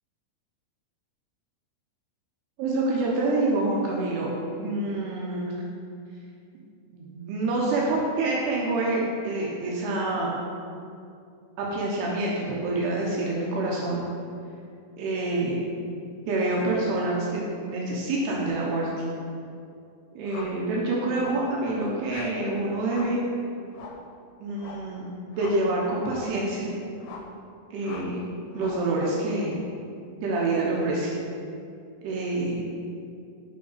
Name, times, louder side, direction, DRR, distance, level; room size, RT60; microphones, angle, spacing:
voice 1, 2.6-4.3 4.6-5.5 6.9-10.4 11.6-14.0 15.0-15.6 16.3-18.9 20.2-23.2 24.4-26.7 27.7-28.2 28.5-29.6 30.2-31.1 32.0-32.6, right 2 dB, 85° right, -4 dB, 2.9 m, -27 dB
sound 1, 20.3-20.6 21.2-21.5 22.1-22.4 22.9-23.2 23.7-24.1 24.6-24.9 25.3-25.7 26.1-26.5 27.0-27.4 27.8-28.2 28.5-28.9, left 5 dB, 90° left, 2.6 m, -43 dB
10.0 x 3.8 x 4.0 m, 2.4 s
omnidirectional pair, 4.6 m